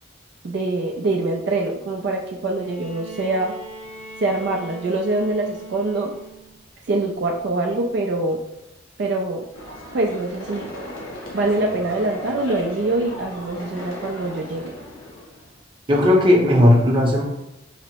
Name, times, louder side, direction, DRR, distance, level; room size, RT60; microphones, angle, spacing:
voice 1, 0.4-3.5 4.2-6.1 6.9-8.4 9.0-9.5 9.9-10.7 11.3-14.7, right 2 dB, 55° right, 0 dB, 0.4 m, -24 dB
Bowed string instrument, 2.6-6.6 7.9-8.0, right 2 dB, 30° left, 0.6 m, -41 dB
sound 1, 9.5-15.6, equal, 90° left, 1.2 m, -36 dB
voice 2, 15.9-17.2, left 1 dB, 25° right, -1 dB, 0.7 m, -15 dB
4.9 x 2.0 x 4.5 m, 0.89 s
head